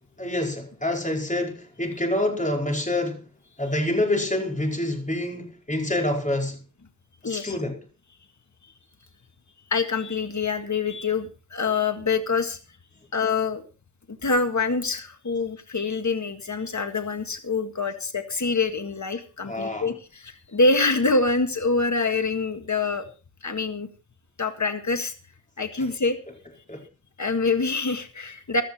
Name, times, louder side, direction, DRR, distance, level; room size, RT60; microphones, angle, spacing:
voice 1, 0.2-3.2 3.6-6.6 7.2-7.8 19.4-19.9 26.7-26.8, left 1 dB, 25° left, 4.8 m, -27 dB
voice 2, 7.2-7.6 9.7-12.6 13.1-13.6 14.1-23.1 23.4-23.9 24.4-25.1 25.6-26.2 27.2-28.6, left 3 dB, 65° left, 1.8 m, -25 dB
16.0 x 12.5 x 4.3 m
wide cardioid pair, 60°, 31 cm